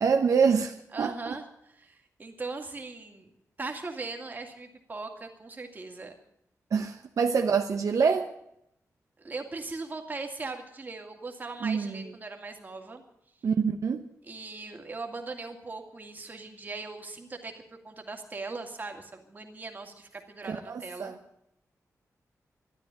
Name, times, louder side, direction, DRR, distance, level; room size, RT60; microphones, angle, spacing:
voice 1, 0.0-1.4 6.7-8.3 11.6-12.0 13.4-14.1 20.5-21.2, right 6 dB, 65° right, 1.0 m, -26 dB
voice 2, 0.9-3.3 3.6-6.1 9.2-13.0 14.2-21.1, right 3 dB, 30° right, 2.2 m, -39 dB
13.5 x 11.5 x 9.0 m
wide cardioid pair, 155°, 6 cm